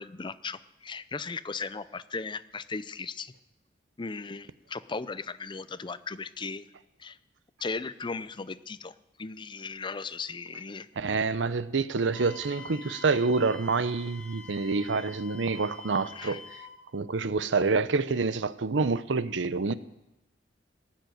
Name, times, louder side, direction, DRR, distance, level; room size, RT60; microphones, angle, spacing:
voice 1, 0.0-3.3 4.0-6.7 7.0-7.2 7.6-8.9 9.2-10.9 16.1-16.4, left 4 dB, 25° left, 0.5 m, -37 dB
voice 2, 11.0-16.4 16.9-19.7, right 4 dB, 80° right, 0.7 m, -27 dB
Wind instrument woodwind instrument, 12.1-16.8, left 5 dB, 5° left, 2.2 m, -47 dB
18.5 x 7.5 x 9.3 m
head